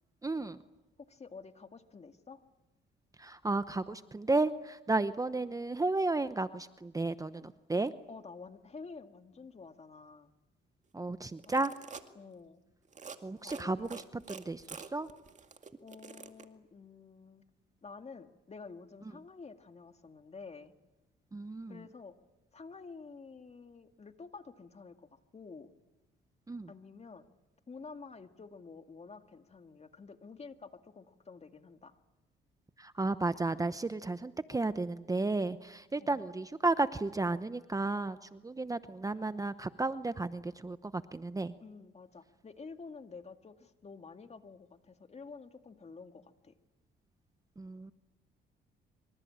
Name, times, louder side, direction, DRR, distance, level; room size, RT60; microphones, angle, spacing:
voice 1, 0.2-0.6 3.2-7.9 10.9-11.7 13.2-15.1 21.3-21.8 26.5-26.7 32.8-41.5 47.6-47.9, right 2 dB, 15° right, 12 dB, 0.9 m, -33 dB
voice 2, 1.0-2.4 8.1-10.3 11.5-11.6 12.1-12.6 13.2-14.2 15.8-17.4 17.8-20.7 21.7-22.2 22.5-25.7 26.7-27.3 27.7-32.0 36.0-36.3 41.6-46.5, left 4 dB, 35° left, 7 dB, 2.1 m, -50 dB
sound 1, 11.3-12.1 12.8-13.2 13.5-16.4, right 5 dB, 35° right, 2.1 m, -47 dB
25.5 x 25.5 x 8.8 m, 1.0 s
cardioid pair, 90°, 20 cm